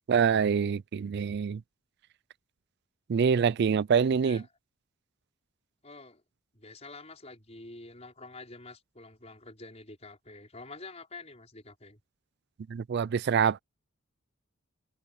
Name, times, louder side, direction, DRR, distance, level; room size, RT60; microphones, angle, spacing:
voice 1, 0.1-1.6 3.1-4.4 12.7-13.6, right 6 dB, 50° right, 0.3 m, -25 dB
voice 2, 5.8-6.2 6.5-12.0, left 3 dB, 30° left, 5.4 m, -47 dB
head